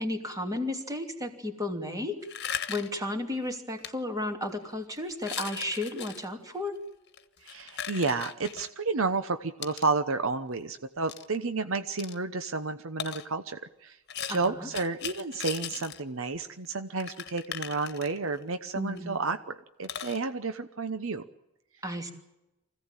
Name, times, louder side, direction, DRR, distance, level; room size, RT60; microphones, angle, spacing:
voice 1, 0.0-2.2 2.7-6.8 14.3-14.7 18.7-19.2 21.8-22.1, left 1 dB, 15° right, 4 dB, 2.8 m, -33 dB
sound 1, 2.2-3.0 3.8-3.9 4.4-4.7 5.1-6.2 7.1-8.7 9.6-9.9 11.1-11.2 12.0-12.2 13.0-13.3 14.1-16.0 16.3-16.4 16.6-16.7 17.0-18.4 19.0-19.1 19.3-19.4 19.8-20.2, left 9 dB, 50° left, 1.4 m, -38 dB
voice 2, 7.4-14.0 14.3-21.2, right 4 dB, 65° right, 10 dB, 1.0 m, -31 dB
25.0 x 16.5 x 9.0 m, 0.93 s
head